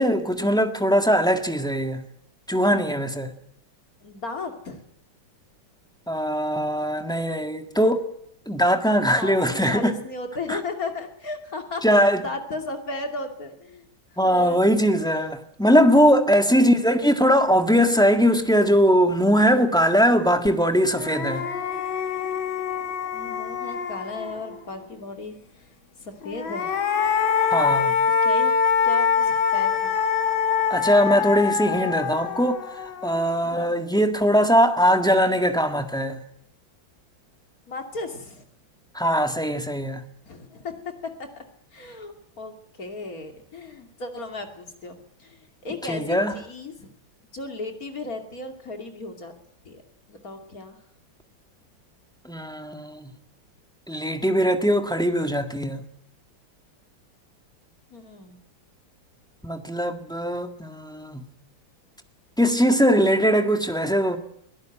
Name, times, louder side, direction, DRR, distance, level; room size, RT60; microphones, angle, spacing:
voice 1, 0.0-2.0 2.5-3.3 6.1-8.1 8.5-10.0 10.5-10.6 11.8-12.2 14.2-21.4 27.5-27.9 30.7-36.2 38.9-40.0 45.9-46.3 52.2-53.1 53.9-55.9 59.4-61.3 62.4-64.2, equal, ahead, 1.6 m, -21 dB
voice 2, 4.0-4.8 9.2-13.8 14.2-15.0 16.5-17.5 23.1-25.4 26.0-26.8 28.1-28.6 28.8-30.0 31.7-31.9 33.4-33.7 37.7-38.4 40.3-41.4 41.7-46.9 47.3-49.3 49.6-49.8 50.1-50.8 57.9-58.4, left 3 dB, 45° left, 3.0 m, -35 dB
sound 1, 20.5-20.6 20.9-24.6 26.2-33.5, left 6 dB, 85° left, 2.5 m, -24 dB
22.5 x 17.0 x 9.2 m
omnidirectional pair, 2.1 m